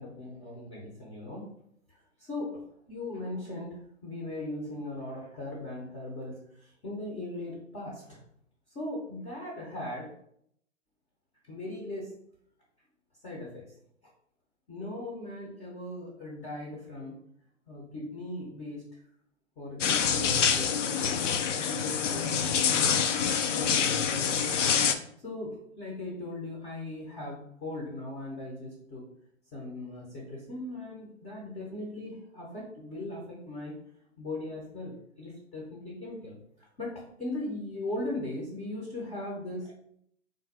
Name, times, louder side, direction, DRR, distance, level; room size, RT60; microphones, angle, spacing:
voice 1, 0.0-1.5 2.2-2.6 2.9-8.2 8.7-10.1 11.5-12.2 13.2-13.6 14.7-17.2 17.7-18.8 19.6-21.2 21.7-23.0 23.5-24.4 25.2-29.1 29.5-33.8 34.2-39.8, left 1 dB, 15° left, -3 dB, 0.7 m, -39 dB
sound 1, 19.8-25.0, left 7 dB, 70° left, 0.6 m, -26 dB
3.8 x 2.6 x 4.0 m, 0.71 s
figure-of-eight pair, 125°, 38 cm